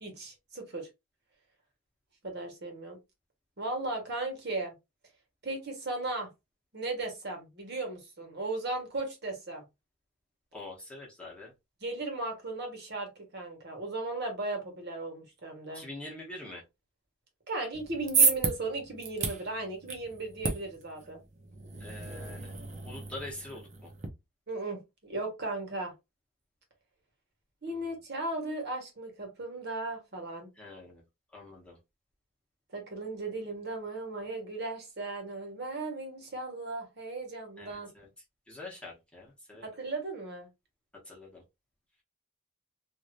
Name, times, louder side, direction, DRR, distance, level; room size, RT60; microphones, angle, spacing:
voice 1, 0.0-0.9 2.2-3.0 3.6-4.7 5.4-6.3 6.7-9.6 11.8-15.8 17.5-21.2 24.5-25.9 27.6-30.5 32.7-37.9 39.6-40.5, right 2 dB, 50° right, 1.2 m, -36 dB
voice 2, 10.5-11.5 15.7-16.6 21.8-22.5 22.8-23.9 27.7-27.8 30.6-31.0 31.3-31.8 37.6-38.1 38.5-39.7 41.0-41.4, left 2 dB, 5° left, 0.9 m, -45 dB
sound 1, 17.7-24.1, right 5 dB, 35° right, 0.7 m, -32 dB
3.1 x 2.7 x 2.5 m
head